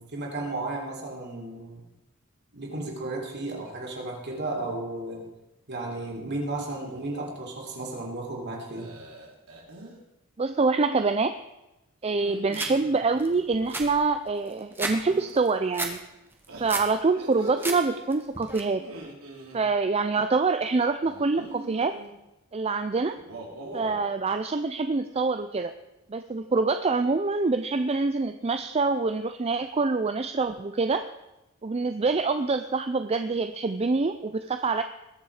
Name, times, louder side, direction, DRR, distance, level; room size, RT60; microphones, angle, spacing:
voice 1, 0.0-1.8 2.5-5.3 5.7-9.0, right 2 dB, 50° right, -1 dB, 3.4 m, -34 dB
sound 1, 5.8-6.1 6.5-7.0 8.7-10.0 12.1-13.4 14.9-15.3 16.5-18.0 18.7-19.6 21.0-22.1 23.1-24.1, right 2 dB, 80° right, 3.3 m, -43 dB
voice 2, 10.4-11.3 12.0-16.0 16.6-18.8 19.5-21.9 22.5-23.2 23.7-25.7 26.1-31.0 31.6-34.8, right 3 dB, 30° right, 9 dB, 0.5 m, -25 dB
sound 2, 12.5-12.7 13.2-13.3 13.5-15.0 15.3-15.9 16.3-16.9 17.3-17.8 18.1-18.6, right 2 dB, 10° right, 1.4 m, -32 dB
20.0 x 7.2 x 4.9 m, 0.94 s
head